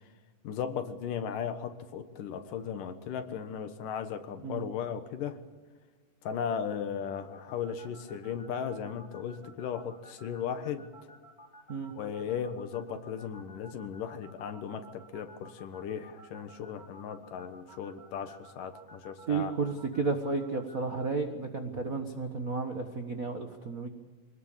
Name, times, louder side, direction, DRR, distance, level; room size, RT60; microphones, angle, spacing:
voice 1, 0.4-5.4 6.2-11.1 12.0-19.5, left 7 dB, 70° left, 9 dB, 2.9 m, -36 dB
sound 1, 7.3-21.1, right 1 dB, 10° left, 3.6 m, -53 dB
voice 2, 19.3-23.9, right 4 dB, 65° right, 5 dB, 0.8 m, -32 dB
24.5 x 19.5 x 7.3 m, 1.4 s
omnidirectional pair, 4.0 m